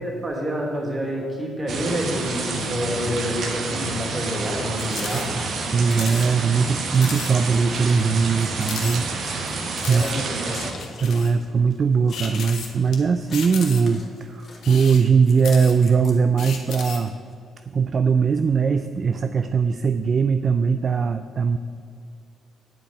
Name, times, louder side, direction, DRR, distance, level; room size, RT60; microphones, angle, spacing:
voice 1, 0.0-5.3 9.9-10.6, equal, 25° right, -1 dB, 2.6 m, -28 dB
sound 1, 1.7-10.7, right 3 dB, 60° right, 1.3 m, -29 dB
sound 2, 4.8-5.3 5.5-5.6 5.9-6.3 6.6-6.7 6.9-7.3 7.7-7.8 8.6-9.4 9.8-10.1 10.8-11.3 12.1-12.9 13.3-14.0 14.5-15.9 16.4-17.1, left 6 dB, 70° left, 1.3 m, -34 dB
voice 2, 5.7-9.1 9.8-10.0 11.0-17.1 17.7-21.6, right 5 dB, 45° right, 10 dB, 0.4 m, -20 dB
Scissors, 6.9-17.3, left 3 dB, 40° left, 1.8 m, -46 dB
9.0 x 5.1 x 7.9 m, 2.4 s
cardioid pair, 90°, 0 cm